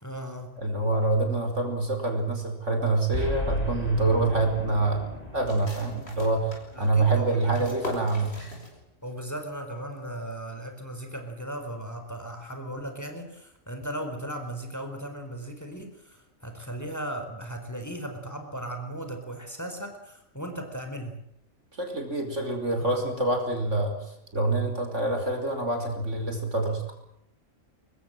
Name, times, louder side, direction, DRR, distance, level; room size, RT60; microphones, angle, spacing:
voice 1, 0.0-0.6 6.7-7.8 9.0-21.2 22.8-23.1, right 1 dB, 15° left, 5 dB, 4.4 m, -37 dB
voice 2, 0.6-8.4 21.7-27.0, right 2 dB, 70° right, 5 dB, 5.6 m, -26 dB
Boom, 3.1-7.5, left 1 dB, 30° left, 4.4 m, -35 dB
sound 1, 5.5-9.1 9.4-9.5 9.9-10.4, equal, 55° left, 6.6 m, -41 dB
24.5 x 21.0 x 7.8 m, 0.77 s
omnidirectional pair, 1.3 m